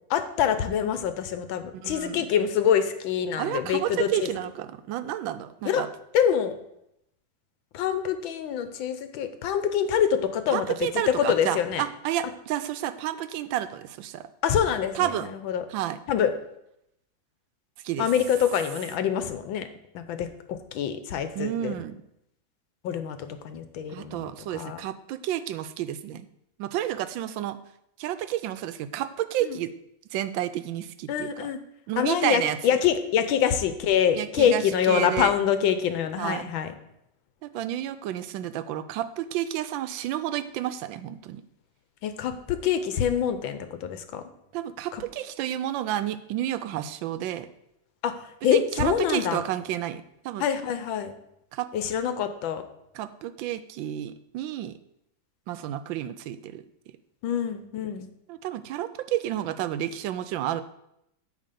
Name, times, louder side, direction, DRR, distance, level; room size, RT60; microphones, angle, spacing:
voice 1, 0.1-4.3 5.6-5.8 6.1-6.6 7.7-10.6 11.1-11.8 14.4-15.6 16.1-16.3 18.0-19.7 19.9-21.7 22.8-23.2 23.4-24.8 29.4-29.6 31.1-31.6 32.0-36.7 42.0-44.2 44.9-45.0 48.0-48.1 48.4-49.4 50.4-51.1 51.7-52.6 57.2-58.1, left 8 dB, 85° left, 10 dB, 1.5 m, -25 dB
voice 2, 1.7-2.3 3.4-5.9 10.5-14.3 14.9-15.3 15.7-16.0 17.8-18.1 21.3-22.0 23.9-26.3 26.6-27.6 28.0-29.7 30.1-31.5 31.9-32.6 34.2-35.4 36.2-36.4 37.4-41.4 44.5-47.5 48.5-50.5 51.5-51.7 52.9-54.7 55.5-56.6 58.3-60.6, right 12 dB, 80° right, 12 dB, 1.3 m, -30 dB
9.0 x 3.6 x 6.6 m, 0.79 s
omnidirectional pair, 2.1 m